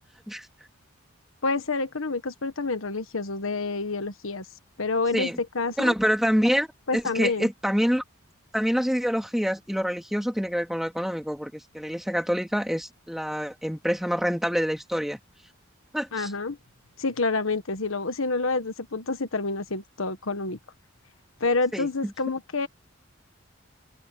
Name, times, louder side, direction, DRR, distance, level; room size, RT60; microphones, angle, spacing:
voice 1, 1.4-4.4 4.8-5.9 6.9-7.5 16.1-16.6 17.0-20.6 21.4-22.7, left 3 dB, 75° left, 1.4 m, -28 dB
voice 2, 5.8-6.7 6.9-8.0 8.5-15.2 15.9-16.3 21.7-21.9, equal, ahead, 3.4 m, -26 dB
head